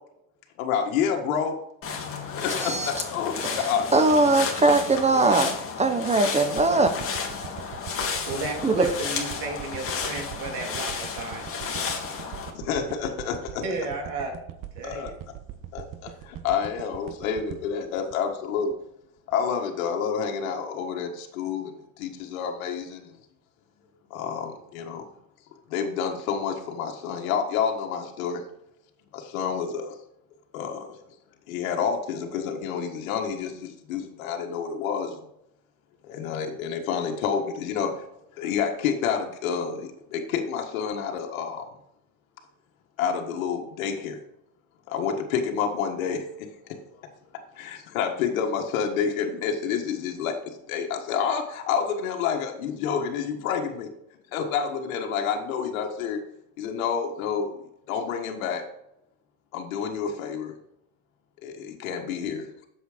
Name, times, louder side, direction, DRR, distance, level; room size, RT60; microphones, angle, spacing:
voice 1, 0.6-1.6 2.3-3.9 6.7-6.8 8.7-8.8 12.5-13.6 14.8-15.1 15.7-18.7 19.3-21.7 22.0-23.2 24.1-25.0 25.7-28.4 29.1-29.9 30.5-31.0 31.5-35.2 36.1-38.1 38.4-41.7 43.0-44.2 44.9-46.8 47.5-53.9 54.3-56.2 56.6-57.6 57.9-58.6 59.5-60.5 61.4-62.5, left 7 dB, 85° left, 3 dB, 1.7 m, -29 dB
sound 1, 1.8-12.5, left 5 dB, 35° left, 2.3 m, -32 dB
voice 2, 3.4-5.5 5.8-6.9 8.6-8.9, right 2 dB, 15° right, 9 dB, 0.8 m, -21 dB
voice 3, 5.1-5.5 8.3-11.5 13.6-14.4 14.8-15.1, right 3 dB, 70° right, 0 dB, 3.6 m, -33 dB
sound 2, 6.6-18.9 19.3-19.4, right 11 dB, 50° right, 1.3 m, -41 dB
8.1 x 7.2 x 5.0 m, 0.79 s
supercardioid pair, 105°, 40 cm